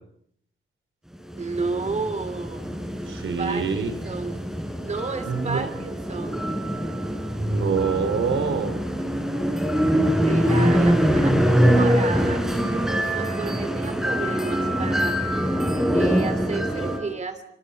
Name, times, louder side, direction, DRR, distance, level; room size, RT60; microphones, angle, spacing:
sound 1, 1.3-17.0, equal, ahead, 5.5 m, -24 dB
voice 1, 1.4-2.6 3.4-4.4 4.8-6.5 10.2-15.2 15.9-17.5, right 4 dB, 35° right, 10 dB, 2.9 m, -32 dB
voice 2, 3.1-3.9 5.3-5.6 7.4-8.8, right 5 dB, 80° right, 8 dB, 3.9 m, -25 dB
26.0 x 25.0 x 5.7 m, 0.70 s
wide cardioid pair, 125°, 20 cm